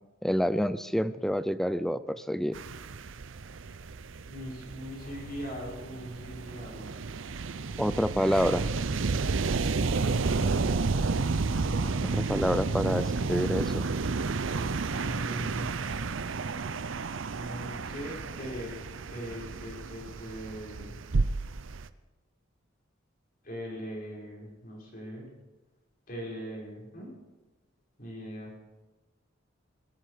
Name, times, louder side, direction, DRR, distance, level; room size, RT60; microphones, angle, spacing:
voice 1, 0.2-2.6 7.8-8.7 12.0-13.9, equal, ahead, 14 dB, 0.5 m, -28 dB
sound 1, 2.5-21.9, right 4 dB, 75° right, 0.6 m, -31 dB
voice 2, 4.3-6.9 11.5-12.6 15.0-15.7 17.3-18.7 19.1-21.0 23.4-25.3 26.1-27.1 28.0-28.5, equal, 45° left, -2 dB, 5.8 m, -40 dB
21.5 x 13.5 x 5.1 m, 1.2 s
head